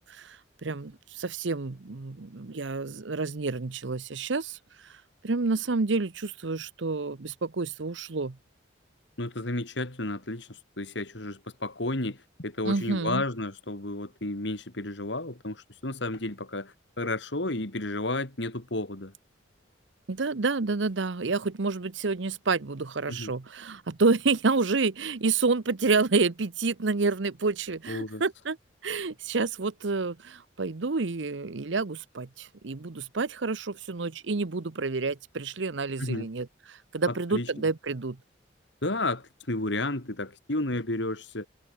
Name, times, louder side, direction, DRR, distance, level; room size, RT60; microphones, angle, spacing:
voice 1, 0.1-4.6 5.2-8.4 12.6-13.2 20.1-28.6 28.8-38.2, right 4 dB, 70° right, 0.8 m, -29 dB
voice 2, 9.2-19.1 23.1-23.3 27.9-28.2 36.0-36.3 37.1-37.5 38.8-41.5, left 2 dB, 65° left, 2.8 m, -32 dB
head